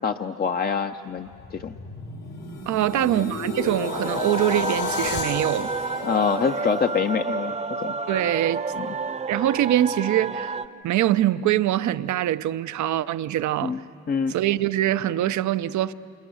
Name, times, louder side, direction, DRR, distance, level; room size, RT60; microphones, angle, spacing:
voice 1, 0.0-1.7 2.9-3.2 6.0-7.9 8.8-8.9 13.6-13.8 14.1-14.3, left 6 dB, 30° left, 0.6 m, -26 dB
sound 1, 1.2-7.4 7.9-8.1, left 4 dB, 90° left, 3.4 m, -33 dB
voice 2, 2.7-5.7 8.1-8.6 9.3-10.6 10.8-13.8 14.3-15.9, right 13 dB, 70° right, 0.7 m, -23 dB
sound 2, 3.8-10.7, right 4 dB, 20° right, 0.8 m, -30 dB
29.5 x 28.0 x 6.3 m
cardioid pair, 90°, 30 cm